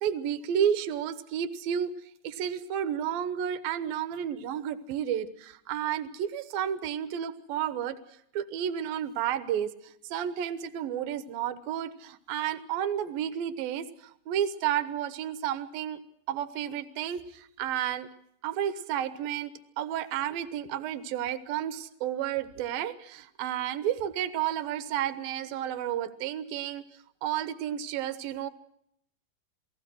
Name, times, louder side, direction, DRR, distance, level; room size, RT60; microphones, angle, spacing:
voice 1, 0.0-1.9 2.2-8.0 8.3-16.0 16.3-18.1 18.4-26.8 27.2-28.5, right 10 dB, 70° right, 12 dB, 2.7 m, -31 dB
28.5 x 19.0 x 6.3 m, 0.72 s
omnidirectional pair, 4.9 m